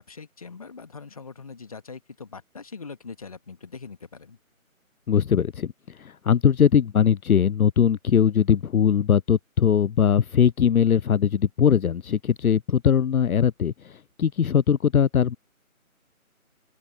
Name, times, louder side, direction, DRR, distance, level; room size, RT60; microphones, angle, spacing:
voice 1, 0.0-4.4, left 5 dB, 25° left, 1.9 m, -42 dB
voice 2, 5.1-15.4, left 8 dB, 80° left, 0.5 m, -21 dB
open air
figure-of-eight pair, 160°, 43 cm